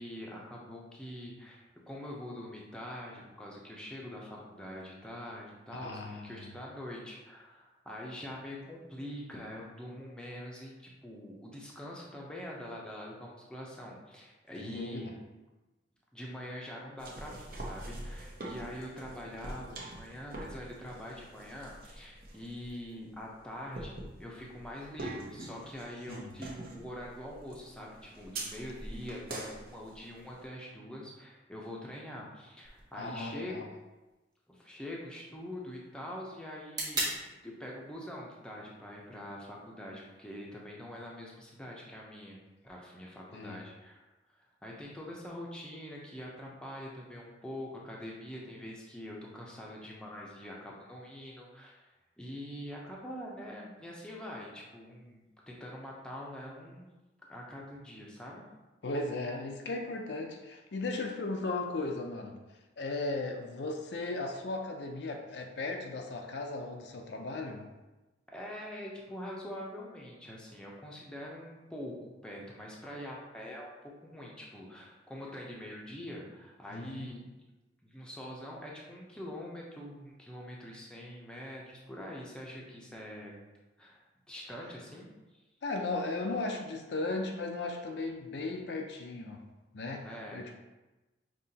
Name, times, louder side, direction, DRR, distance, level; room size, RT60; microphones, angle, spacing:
voice 1, 0.0-15.1 16.1-33.7 34.5-37.0 37.4-42.4 42.6-44.0 44.6-51.9 52.2-56.9 57.3-58.4 68.3-73.7 74.0-77.4 77.8-83.3 83.8-85.1 90.0-90.5, equal, 5° left, -3 dB, 0.6 m, -44 dB
voice 2, 5.7-6.5 14.6-15.0 26.1-26.3 32.9-33.7 43.3-43.6 58.8-62.4 62.8-67.7 76.7-77.1 85.6-89.4 89.7-90.1 90.3-90.5, left 2 dB, 65° left, 3 dB, 0.5 m, -36 dB
sound 1, 17.0-30.5, right 1 dB, 50° right, 0.8 m, -45 dB
sound 2, 32.6-40.6, right 2 dB, 20° right, 1.0 m, -43 dB
5.5 x 2.9 x 2.8 m, 1.1 s
head